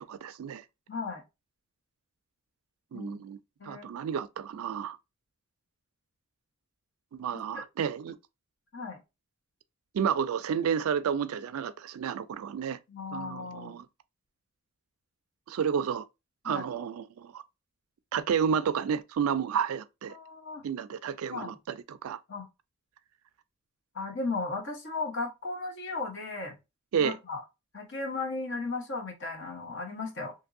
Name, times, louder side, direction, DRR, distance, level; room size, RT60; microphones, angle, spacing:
voice 1, 0.1-0.6 2.9-3.4 3.6-5.0 7.1-8.1 9.9-12.8 13.1-13.9 15.5-16.0 16.4-17.4 18.1-20.2 20.6-22.2 26.9-27.2, right 7 dB, 85° right, 0.4 m, -31 dB
voice 2, 0.9-1.2 2.9-3.2 3.6-3.9 7.3-7.6 8.7-9.0 12.9-13.7 16.4-16.7 20.1-20.6 21.3-21.6 22.3-22.5 23.9-26.6 27.0-27.4 27.7-30.3, left 3 dB, 60° left, 1.0 m, -36 dB
2.8 x 2.6 x 2.4 m
head